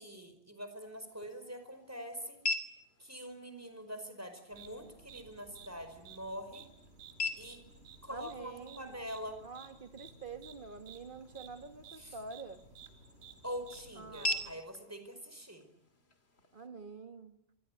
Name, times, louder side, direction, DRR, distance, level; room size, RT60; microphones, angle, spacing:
voice 1, 0.0-2.4 3.0-6.7 7.4-7.6 8.0-9.4 12.0-12.1 13.4-15.7, equal, 15° right, 5.1 m, -44 dB
sound 1, 0.7-16.7, left 2 dB, 70° left, 2.9 m, -44 dB
sound 2, 4.5-14.5, right 5 dB, 75° right, 5.7 m, -55 dB
voice 2, 8.1-9.0 9.4-12.6 14.0-14.6 16.5-17.4, right 4 dB, 50° right, 1.9 m, -47 dB
26.5 x 24.5 x 9.4 m
omnidirectional pair, 1.1 m